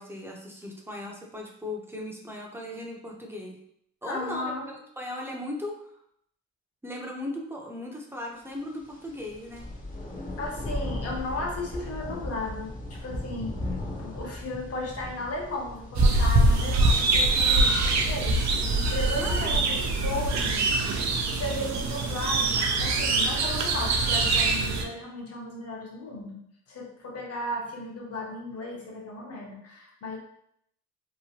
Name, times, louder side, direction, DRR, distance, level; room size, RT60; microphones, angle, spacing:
voice 1, 0.0-3.6 4.0-5.8 6.8-9.7 19.2-19.7, left 1 dB, 10° right, -1 dB, 0.6 m, -37 dB
voice 2, 4.0-4.7 10.4-18.4 18.7-21.0 21.3-26.4 26.7-30.2, left 1 dB, 55° left, -1 dB, 0.9 m, -35 dB
sound 1, 8.8-21.5, left 1 dB, 25° left, 0.7 m, -38 dB
sound 2, 15.9-24.8, right 2 dB, 65° right, 0.5 m, -24 dB
2.9 x 2.1 x 2.8 m, 0.72 s
cardioid pair, 90°, 30 cm